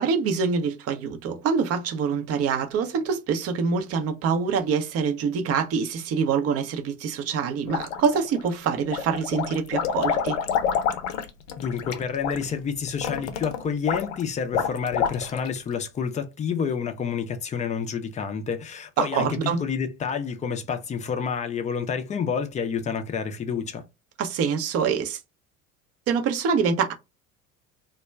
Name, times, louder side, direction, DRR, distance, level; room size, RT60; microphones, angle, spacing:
voice 1, 0.0-10.4 19.0-19.6 24.2-25.2 26.1-26.9, right 6 dB, 35° right, 0.6 m, -25 dB
sound 1, 7.7-8.5 8.9-15.6, left 7 dB, 65° left, 0.6 m, -28 dB
voice 2, 11.6-19.3 19.6-23.8, left 6 dB, 20° left, 0.4 m, -29 dB
2.2 x 2.1 x 3.3 m
figure-of-eight pair, 70°, 42 cm